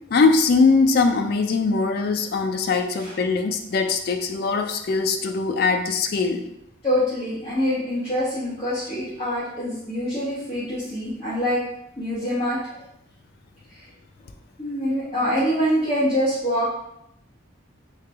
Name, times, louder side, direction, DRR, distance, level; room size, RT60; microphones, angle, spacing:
voice 1, 0.1-6.4, left 4 dB, 50° left, 6 dB, 0.4 m, -21 dB
voice 2, 6.8-11.7 12.0-12.8 13.7-13.8 14.6-16.7, equal, 30° left, -13 dB, 1.2 m, -25 dB
3.3 x 2.8 x 3.4 m, 0.78 s
head